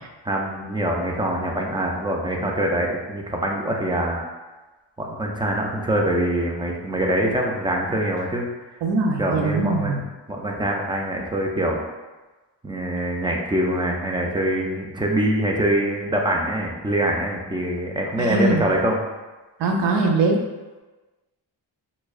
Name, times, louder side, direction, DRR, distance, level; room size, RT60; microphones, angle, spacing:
voice 1, 0.2-4.2 5.0-8.8 9.2-10.0 10.3-11.8 12.6-19.1, right 1 dB, 10° right, 0 dB, 0.3 m, -24 dB
voice 2, 8.8-10.0 18.2-18.6 19.6-20.4, right 3 dB, 70° right, 2 dB, 0.6 m, -21 dB
4.4 x 2.1 x 2.4 m, 1.2 s
wide cardioid pair, 100°, 46 cm